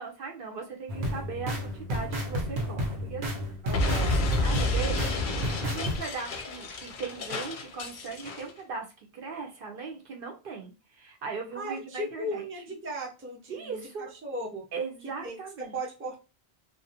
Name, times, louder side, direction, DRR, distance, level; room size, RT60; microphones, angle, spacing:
voice 1, 0.0-3.4 4.4-5.1 5.5-8.9 9.1-12.5 13.5-14.1 14.7-15.8, right 5 dB, 65° right, 2 dB, 0.7 m, -38 dB
sound 1, 0.9-6.0, equal, 85° right, 1.0 m, -32 dB
voice 2, 3.6-4.2 11.5-14.7 15.2-16.2, right 1 dB, 15° right, -1 dB, 0.5 m, -37 dB
Explosion, 3.7-8.5, left 1 dB, 60° left, 0.6 m, -30 dB
2.4 x 2.1 x 2.6 m, 0.30 s
omnidirectional pair, 1.1 m